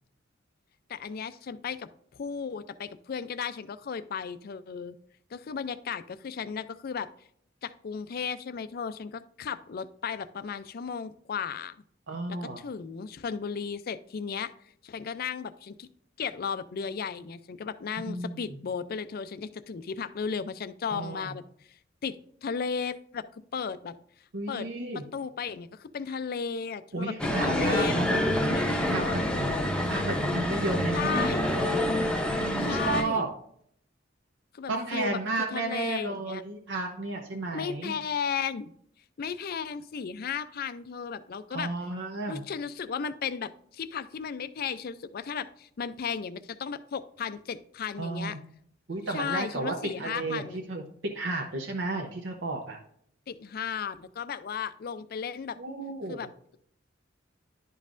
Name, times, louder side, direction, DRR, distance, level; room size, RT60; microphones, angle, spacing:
voice 1, 0.9-4.9 5.3-7.1 7.6-11.7 12.4-14.5 14.8-15.9 16.2-21.4 22.0-23.2 23.5-24.0 24.5-24.7 24.9-28.0 28.5-29.4 30.9-31.5 32.6-33.3 34.5-35.2 35.5-36.4 37.5-38.7 39.2-41.7 42.3-48.4 49.1-50.6 53.3-55.6 56.1-56.6, left 6 dB, 50° left, 14 dB, 0.4 m, -35 dB
voice 2, 12.1-12.6 18.1-18.4 20.9-21.3 24.3-25.0 26.9-31.3 32.6-33.3 34.7-37.9 41.5-42.4 48.0-48.4 48.9-52.8 55.6-56.3, right 2 dB, 70° right, 1 dB, 0.7 m, -33 dB
sound 1, 27.2-33.0, left 1 dB, 5° left, 0.7 m, -27 dB
11.0 x 5.3 x 2.5 m, 0.67 s
head